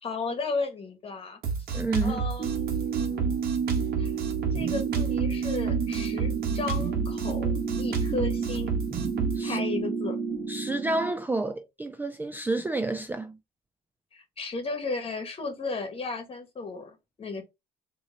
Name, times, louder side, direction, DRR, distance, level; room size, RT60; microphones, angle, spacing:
voice 1, 0.0-1.4 2.0-3.3 4.0-4.1 4.5-8.7 9.4-10.2 14.1-17.4, left 4 dB, 35° left, 1.5 m, -34 dB
Drum kit, 1.4-9.4, right 5 dB, 65° right, 1.4 m, -30 dB
voice 2, 1.7-2.2 9.3-9.6 10.5-13.4, right 2 dB, 10° right, 0.4 m, -29 dB
sound 1, 2.4-11.1, right 6 dB, 40° right, 1.3 m, -30 dB
3.8 x 3.0 x 4.1 m
cardioid pair, 110°, 17 cm